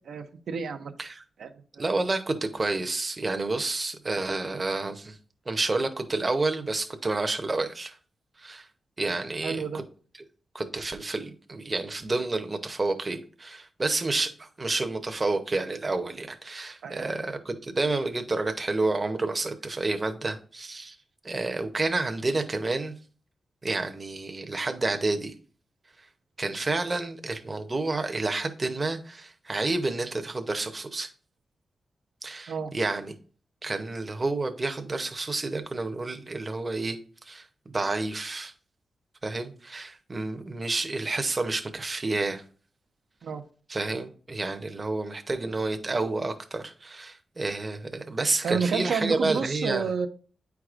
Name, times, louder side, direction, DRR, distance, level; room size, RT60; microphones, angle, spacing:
voice 1, 0.1-0.9 1.4-1.5 1.8-1.9 9.4-9.8 16.8-17.1 32.5-32.7 43.2-43.4 48.4-50.1, right 5 dB, 85° right, 6 dB, 0.6 m, -30 dB
voice 2, 1.8-5.2 5.5-8.0 8.4-8.7 9.0-9.6 10.5-21.0 21.2-22.9 23.6-25.3 26.4-31.1 32.2-33.2 33.6-37.0 37.3-38.5 39.2-42.4 43.7-49.9, right 3 dB, 30° right, 6 dB, 0.7 m, -29 dB
8.9 x 4.7 x 2.5 m, 0.41 s
wide cardioid pair, 110°, 0 cm